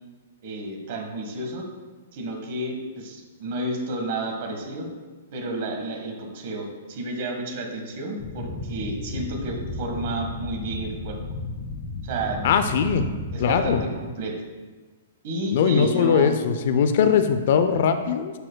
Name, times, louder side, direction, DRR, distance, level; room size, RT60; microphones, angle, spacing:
voice 1, 0.4-1.7 2.1-4.9 5.3-11.2 12.0-12.5 13.3-13.9 14.2-14.4 15.2-16.3, right 1 dB, 50° right, 3 dB, 1.4 m, -31 dB
sound 1, 8.2-13.8, left 2 dB, 30° left, 1.4 m, -34 dB
voice 2, 12.4-13.0 13.4-13.8 15.5-18.3, left 7 dB, 55° left, 9 dB, 0.5 m, -20 dB
12.0 x 4.4 x 2.2 m, 1.4 s
hypercardioid pair, 140°, 0 cm